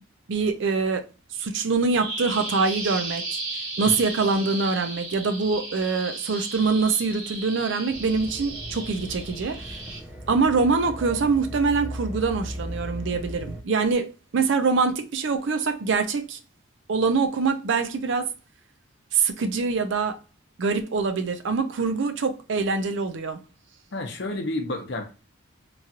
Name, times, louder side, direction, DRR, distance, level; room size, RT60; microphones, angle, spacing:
voice 1, 0.3-1.1 1.3-3.4 3.8-9.7 10.3-16.4 16.9-18.3 19.1-20.2 20.6-23.4, right 4 dB, 65° right, 0.5 m, -24 dB
Bird vocalization bird call bird song, 2.0-10.0, right 2 dB, 90° right, 1.2 m, -35 dB
sound 1, 7.9-13.6, equal, 10° right, 0.5 m, -37 dB
voice 2, 23.9-25.1, left 2 dB, 55° left, 0.7 m, -30 dB
3.0 x 2.8 x 2.3 m
head